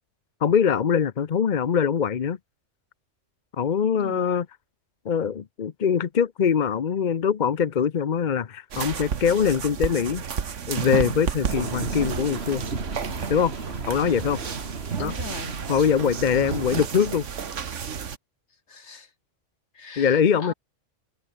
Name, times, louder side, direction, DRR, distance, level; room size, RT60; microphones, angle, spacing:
voice 1, 0.4-2.4 3.6-4.4 5.0-10.2 10.7-12.6 13.3-13.5 13.9-14.4 15.0-15.1 15.7-17.3 20.0-20.5, left 7 dB, 45° left, 0.8 m, -23 dB
voice 2, 4.0-4.3 15.0-15.6 18.7-19.1 19.7-20.5, left 4 dB, 65° left, 2.2 m, -39 dB
sound 1, 8.7-18.2, right 7 dB, 75° right, 1.6 m, -32 dB
sound 2, 11.5-16.8, right 3 dB, 55° right, 2.7 m, -34 dB
omnidirectional pair, 1.3 m